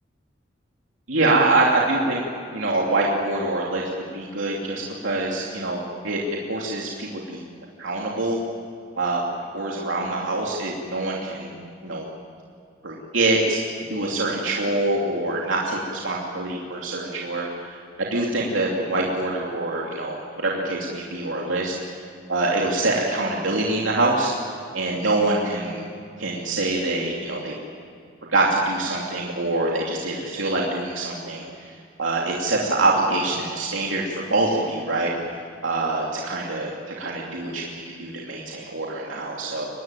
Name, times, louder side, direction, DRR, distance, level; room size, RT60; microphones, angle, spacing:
voice 1, 1.1-2.2 2.5-3.8 4.1-6.2 6.5-7.4 7.8-8.4 9.0-9.2 9.5-11.6 11.8-12.0 12.8-13.6 13.9-21.8 22.3-24.3 24.7-25.8 26.2-27.6 28.2-31.7 32.0-35.1 35.6-36.7 37.0-39.7, right 2 dB, 90° right, -3 dB, 2.9 m, -25 dB
24.0 x 19.5 x 9.1 m, 2.4 s
head